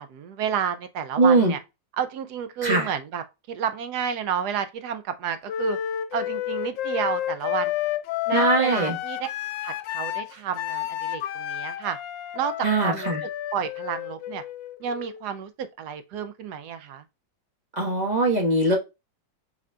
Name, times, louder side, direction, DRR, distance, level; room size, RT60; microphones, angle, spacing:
voice 1, 0.0-1.6 2.0-5.8 6.1-7.7 8.3-9.3 9.6-12.0 12.3-13.1 13.5-14.4 14.8-17.0, right 8 dB, 70° right, 1.1 m, -30 dB
voice 2, 1.2-1.5 2.6-2.9 8.3-9.0 12.6-13.2 17.8-18.8, right 2 dB, 25° right, 1.1 m, -21 dB
Wind instrument woodwind instrument, 5.5-15.3, left 12 dB, 85° left, 1.3 m, -30 dB
5.0 x 3.9 x 2.2 m
omnidirectional pair, 2.0 m